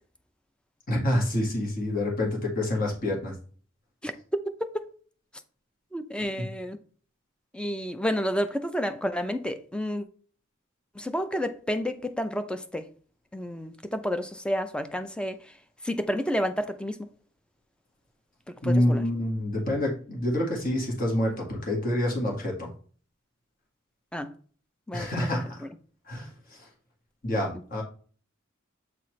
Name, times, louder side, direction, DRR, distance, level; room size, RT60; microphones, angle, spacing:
voice 1, 0.9-3.3 18.6-22.7 24.9-25.6 26.1-26.6 27.2-27.8, left 1 dB, 45° left, 1.8 m, -27 dB
voice 2, 5.9-6.8 7.5-10.1 11.0-12.9 13.3-15.4 15.8-17.0 18.6-19.1 24.1-24.3 24.9-25.1 25.6-25.7, equal, 5° left, 0.5 m, -30 dB
7.9 x 4.2 x 3.2 m
head